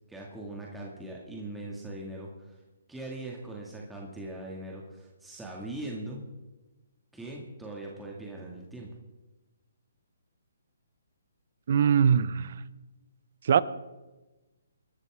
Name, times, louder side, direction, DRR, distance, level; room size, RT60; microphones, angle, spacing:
voice 1, 0.1-2.6 2.9-6.2 7.1-8.9, right 1 dB, 5° right, -3 dB, 2.2 m, -40 dB
voice 2, 11.7-12.6 13.4-13.6, right 7 dB, 55° right, 17 dB, 0.8 m, -22 dB
24.0 x 12.5 x 3.7 m, 1.1 s
hypercardioid pair, 140°, 0 cm